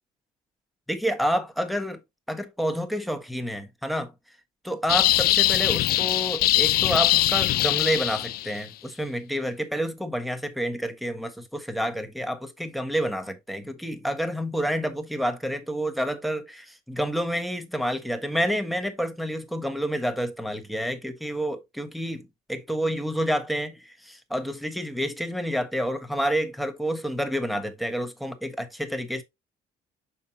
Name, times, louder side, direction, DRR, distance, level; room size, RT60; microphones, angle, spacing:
voice 1, 0.9-2.0 2.3-4.1 4.6-29.2, equal, ahead, 1.4 m, -29 dB
sound 1, 4.9-8.6, left 16 dB, 65° left, 0.4 m, -22 dB
6.4 x 5.6 x 2.8 m
cardioid pair, 110°, 17 cm